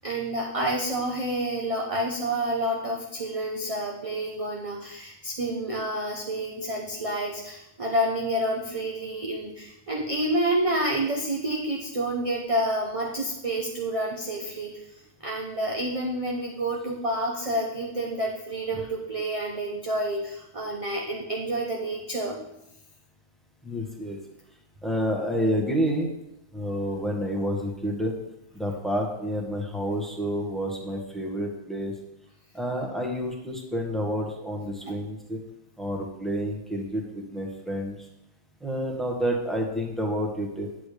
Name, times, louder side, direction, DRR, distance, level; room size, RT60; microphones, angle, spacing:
voice 1, 0.0-14.8 15.2-22.4 34.8-34.9, right 1 dB, 30° right, -2 dB, 0.9 m, -29 dB
voice 2, 23.6-24.2 24.8-26.1 26.5-28.1 28.5-31.9 32.5-35.4 35.8-38.1 38.6-40.7, equal, ahead, -1 dB, 1.5 m, -29 dB
10.5 x 8.3 x 3.4 m, 0.85 s
omnidirectional pair, 1.4 m